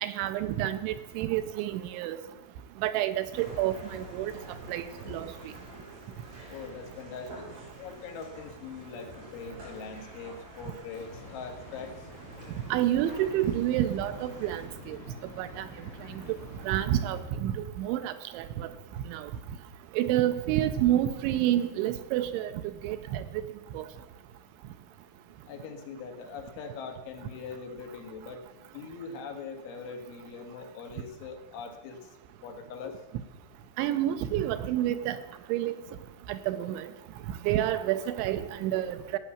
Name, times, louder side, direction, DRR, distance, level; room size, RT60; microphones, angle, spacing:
voice 1, 0.0-2.2 2.8-4.3 4.7-5.3 12.7-15.0 15.4-15.7 16.1-16.4 16.7-18.7 19.1-19.3 19.9-22.5 22.8-23.2 23.7-23.8 33.8-35.2 35.5-35.7 36.3-36.9 37.4-39.2, right 12 dB, 80° right, 11 dB, 2.9 m, -29 dB
sound 1, 3.3-14.6, right 1 dB, 35° right, 5.9 m, -48 dB
voice 2, 6.5-7.5 7.8-12.1 25.5-32.1 32.4-33.0, left 5 dB, 75° left, 4 dB, 3.9 m, -42 dB
sound 2, 10.9-17.2, equal, 40° left, 5.2 m, -47 dB
15.0 x 9.0 x 7.2 m, 1.1 s
omnidirectional pair, 5.6 m